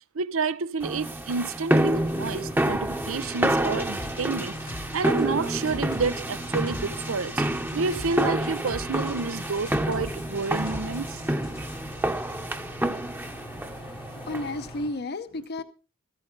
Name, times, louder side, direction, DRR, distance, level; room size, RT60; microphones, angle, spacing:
voice 1, 0.1-2.8 3.1-4.5 4.9-7.4 7.7-11.2, right 4 dB, 90° right, 0.7 m, -29 dB
sound 1, 0.8-14.7, right 1 dB, 10° right, 0.9 m, -28 dB
sound 2, 1.9-14.9, equal, 25° left, 0.8 m, -44 dB
sound 3, 3.9-11.8, left 1 dB, 85° left, 2.2 m, -43 dB
voice 2, 14.3-15.6, left 2 dB, 50° left, 0.8 m, -32 dB
14.5 x 14.5 x 4.0 m
head